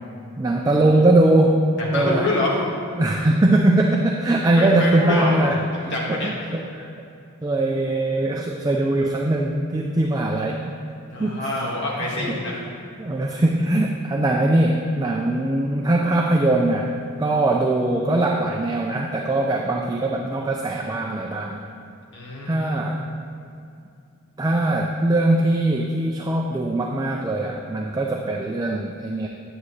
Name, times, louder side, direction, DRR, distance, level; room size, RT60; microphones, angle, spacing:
voice 1, 0.4-1.7 1.9-2.3 2.9-6.9 7.4-10.8 11.2-11.5 12.0-12.3 13.0-16.9 17.2-21.6 22.4-23.0 24.4-29.3, right 2 dB, 15° right, 0 dB, 0.4 m, -21 dB
voice 2, 1.8-2.6 4.6-5.4 5.7-6.3 11.1-12.6 22.1-22.8, left 2 dB, 50° left, -4 dB, 1.7 m, -26 dB
9.9 x 7.0 x 3.2 m, 2.5 s
head